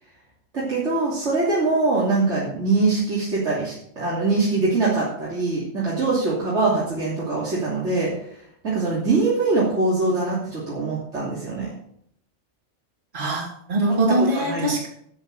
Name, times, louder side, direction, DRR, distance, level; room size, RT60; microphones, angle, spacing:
voice 1, 0.5-11.7 14.1-14.6, right 3 dB, 70° right, -7 dB, 3.5 m, -23 dB
voice 2, 13.1-14.9, right 1 dB, 45° right, 0 dB, 2.5 m, -22 dB
12.5 x 7.4 x 6.6 m, 0.71 s
omnidirectional pair, 1.3 m